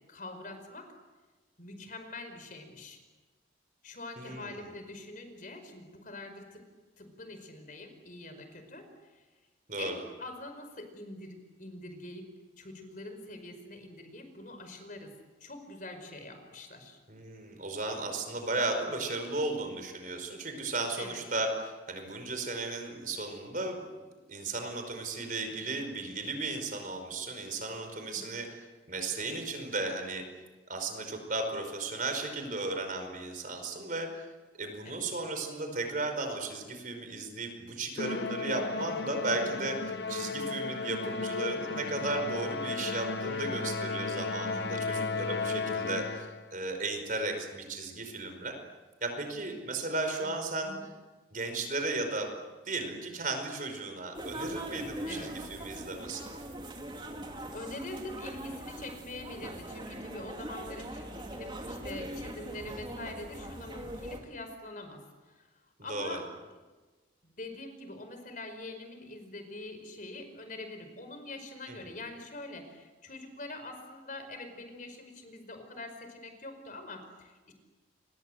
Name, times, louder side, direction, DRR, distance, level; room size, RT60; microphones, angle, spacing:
voice 1, 0.1-0.9 1.6-3.0 3.8-6.7 7.0-9.2 9.8-12.3 12.6-15.1 15.4-17.0 21.0-21.2 28.1-28.4 34.8-35.0 39.9-40.1 43.2-43.6 50.2-50.3 50.6-50.9 55.1-55.3 57.5-65.5 65.8-66.5 67.2-77.5, left 2 dB, 45° left, 7 dB, 5.0 m, -44 dB
voice 2, 4.2-4.7 9.7-10.0 17.1-23.8 24.3-28.6 28.9-30.2 30.7-34.3 34.6-39.8 40.1-48.5 49.0-50.7 51.3-52.3 52.7-56.4 65.9-66.2 71.7-71.9, right 2 dB, 45° right, 6 dB, 5.2 m, -35 dB
Musical instrument, 38.0-46.5, left 4 dB, 60° left, 1.0 m, -34 dB
sound 1, 54.1-64.2, right 1 dB, 25° right, 3.3 m, -41 dB
29.5 x 24.0 x 7.9 m, 1.3 s
head